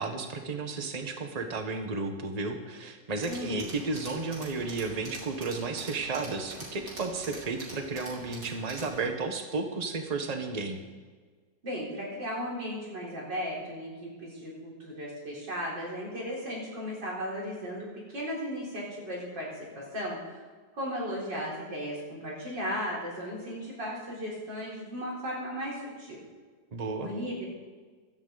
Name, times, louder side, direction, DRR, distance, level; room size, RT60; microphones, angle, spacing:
voice 1, 0.0-10.8 26.7-27.1, right 3 dB, 25° right, 5 dB, 1.1 m, -33 dB
Tools, 3.2-9.0, right 1 dB, 45° right, 3.6 m, -45 dB
voice 2, 3.3-3.8 11.6-19.5 19.7-20.4 20.7-26.2 27.0-27.5, equal, 70° right, -5 dB, 4.7 m, -36 dB
16.0 x 12.5 x 4.1 m, 1.5 s
omnidirectional pair, 2.0 m